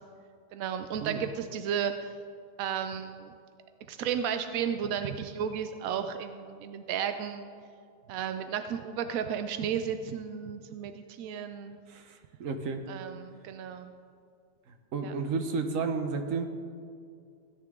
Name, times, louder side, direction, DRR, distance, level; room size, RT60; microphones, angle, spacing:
voice 1, 0.5-1.9 2.6-3.3 3.9-7.5 8.1-11.8 12.9-13.9 15.0-15.1, right 8 dB, 75° right, 8 dB, 0.8 m, -33 dB
voice 2, 11.9-12.9 14.7-16.5, right 4 dB, 55° right, 6 dB, 1.1 m, -32 dB
16.5 x 9.6 x 3.6 m, 2.3 s
omnidirectional pair, 2.0 m